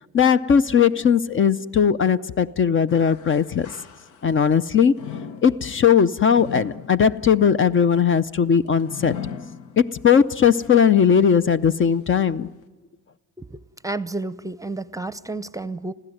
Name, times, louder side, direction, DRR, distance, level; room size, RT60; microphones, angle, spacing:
voice 1, 0.1-3.7 4.2-4.9 5.4-9.2 9.8-12.5, left 7 dB, 40° left, 0.6 m, -18 dB
sound 1, 2.9-4.5 4.9-10.2 10.7-10.8 11.6-11.7, left 8 dB, 85° left, 1.1 m, -38 dB
voice 2, 13.4-15.9, right 2 dB, 10° right, 0.7 m, -31 dB
26.5 x 15.5 x 7.9 m
cardioid pair, 90°, 30 cm